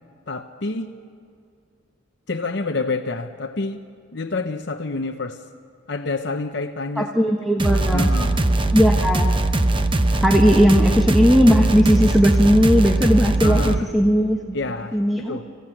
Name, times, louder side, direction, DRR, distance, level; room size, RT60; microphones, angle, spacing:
voice 1, 0.3-1.0 2.3-3.8 4.1-5.5 5.9-7.1 7.9-8.4 13.4-13.9 14.5-15.4, left 3 dB, 55° left, 6 dB, 0.8 m, -28 dB
voice 2, 7.0-8.1 8.7-9.4 10.1-14.6 14.9-15.4, equal, ahead, 0 dB, 1.1 m, -18 dB
sound 1, 7.6-13.8, right 2 dB, 25° right, 0.8 m, -20 dB
27.0 x 15.5 x 9.0 m, 2.3 s
head